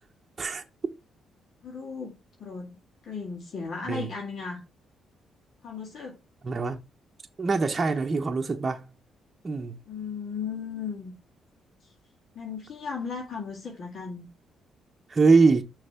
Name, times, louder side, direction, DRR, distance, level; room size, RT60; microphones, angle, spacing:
voice 1, 1.6-2.8 3.0-4.6 5.6-6.2 9.9-11.1 11.8-11.9 12.3-14.3, left 5 dB, 60° left, 2.2 m, -36 dB
voice 2, 6.4-6.8 7.4-8.8 9.4-9.8 15.1-15.6, right 4 dB, 30° right, 0.9 m, -23 dB
6.5 x 3.4 x 5.7 m
cardioid pair, 90°, 0 cm